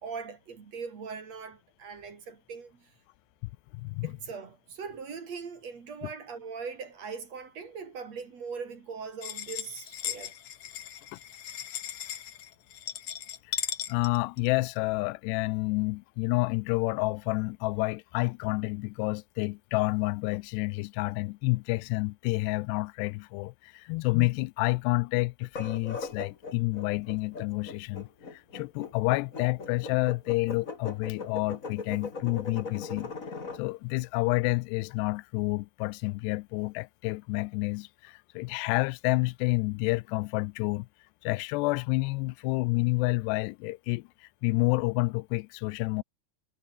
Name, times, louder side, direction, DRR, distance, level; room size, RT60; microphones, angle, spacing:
voice 1, 0.0-2.9 4.0-10.4, right 5 dB, 45° right, 3.6 m, -40 dB
voice 2, 3.7-4.1 11.1-11.2 13.9-33.1 33.6-40.9 41.2-44.1 44.4-46.0, left 24 dB, 90° left, 2.7 m, -29 dB
sound 1, 9.2-14.8, left 10 dB, 55° left, 2.3 m, -37 dB
sound 2, 25.4-33.6, left 4 dB, 25° left, 2.2 m, -39 dB
omnidirectional pair, 4.7 m